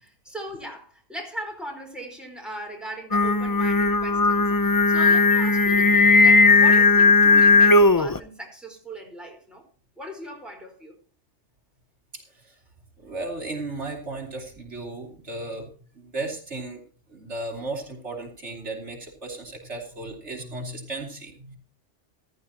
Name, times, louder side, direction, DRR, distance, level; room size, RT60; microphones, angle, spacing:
voice 1, 0.0-9.6 10.0-10.9, right 1 dB, ahead, 1 dB, 4.3 m, -38 dB
Singing, 3.1-8.2, left 3 dB, 25° left, 0.4 m, -17 dB
voice 2, 12.1-12.5 13.0-15.7 15.9-16.8 17.1-21.6, right 2 dB, 70° right, 0 dB, 3.3 m, -35 dB
15.0 x 14.5 x 2.9 m, 0.40 s
omnidirectional pair, 1.2 m